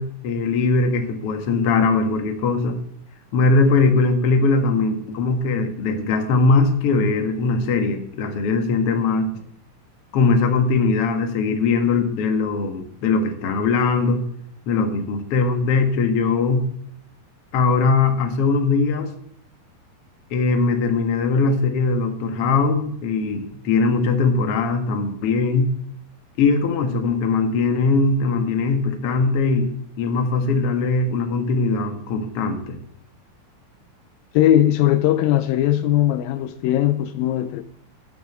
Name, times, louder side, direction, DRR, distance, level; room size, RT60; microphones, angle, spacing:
voice 1, 0.0-2.8 3.3-9.3 10.1-14.2 14.7-16.6 17.5-19.1 20.3-25.7 26.4-29.7 30.0-32.8, left 4 dB, 50° left, 2.0 m, -20 dB
voice 2, 34.3-37.6, left 12 dB, 80° left, 2.4 m, -19 dB
13.5 x 6.6 x 7.9 m
omnidirectional pair, 4.2 m